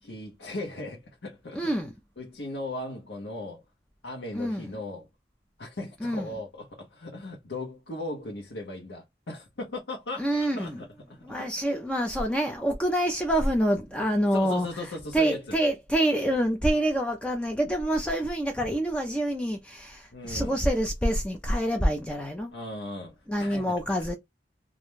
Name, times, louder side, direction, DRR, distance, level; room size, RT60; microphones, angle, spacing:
voice 1, 0.0-1.6 2.2-3.6 4.0-5.1 5.6-11.3 14.3-15.6 20.1-20.6 22.5-23.7, left 2 dB, 85° left, 0.8 m, -37 dB
voice 2, 1.5-1.9 4.3-4.8 6.0-6.3 10.2-10.8 11.2-14.8 15.1-22.5 23.3-24.1, right 1 dB, 5° left, 0.3 m, -26 dB
2.4 x 2.1 x 2.9 m
head